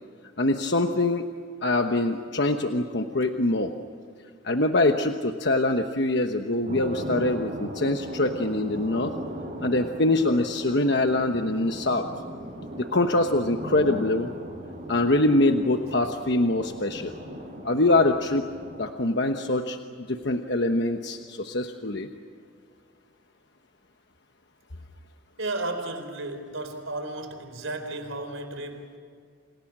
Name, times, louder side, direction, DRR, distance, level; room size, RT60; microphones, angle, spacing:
voice 1, 0.4-1.2 1.6-3.7 4.4-9.1 9.6-12.0 12.8-14.3 14.9-17.1 17.6-18.4 18.8-19.8 20.1-22.1, left 2 dB, 60° left, 5 dB, 1.2 m, -24 dB
sound 1, 6.7-18.9, right 1 dB, 40° right, 4.9 m, -38 dB
voice 2, 25.4-29.0, right 2 dB, 85° right, 6 dB, 4.5 m, -33 dB
29.5 x 28.5 x 6.2 m, 2.1 s
head